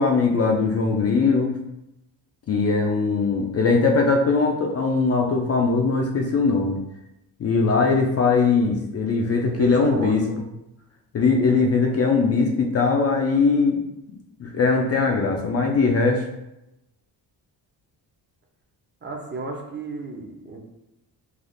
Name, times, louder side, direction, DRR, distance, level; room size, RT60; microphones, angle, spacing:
voice 1, 0.0-1.5 2.5-6.8 7.4-10.2 11.1-13.8 14.4-16.3, left 4 dB, 40° left, 1 dB, 0.4 m, -20 dB
voice 2, 9.4-10.4 19.0-20.6, right 3 dB, 25° right, 0 dB, 0.5 m, -33 dB
3.4 x 2.3 x 2.5 m, 0.89 s
cardioid pair, 105°, 42 cm